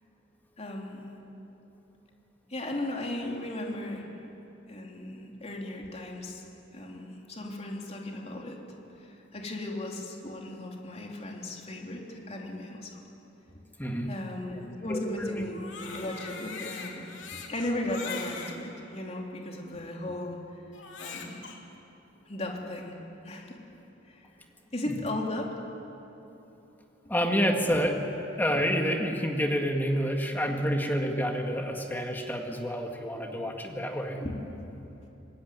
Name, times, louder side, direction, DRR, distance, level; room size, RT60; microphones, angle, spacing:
voice 1, 0.6-1.1 2.5-4.1 4.7-6.4 6.7-8.6 9.0-13.0 14.1-20.4 21.0-21.5 22.3-23.0 23.2-23.6 24.1-24.3 24.7-25.6 34.2-34.3, left 1 dB, 35° left, 0 dB, 3.5 m, -36 dB
voice 2, 13.8-14.1 14.9-15.4 24.9-25.0 27.1-28.0 28.4-34.2, equal, 10° left, 2 dB, 2.0 m, -28 dB
Crying sobbing, 15.4-18.6 19.3-19.4 20.7-21.6, left 5 dB, 75° left, 3.0 m, -41 dB
26.0 x 20.5 x 9.5 m, 3.0 s
head